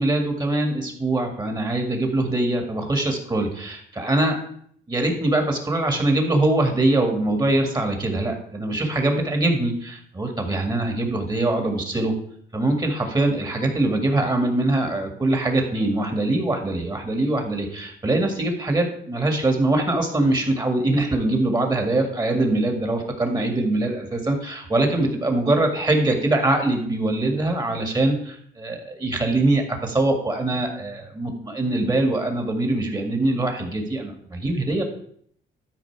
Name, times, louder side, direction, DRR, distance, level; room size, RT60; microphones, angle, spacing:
voice 1, 0.0-4.4 4.9-12.2 12.5-34.8, right 2 dB, 20° right, 3 dB, 2.0 m, -23 dB
12.0 x 4.9 x 4.7 m, 0.63 s
cardioid pair, 90°, 20 cm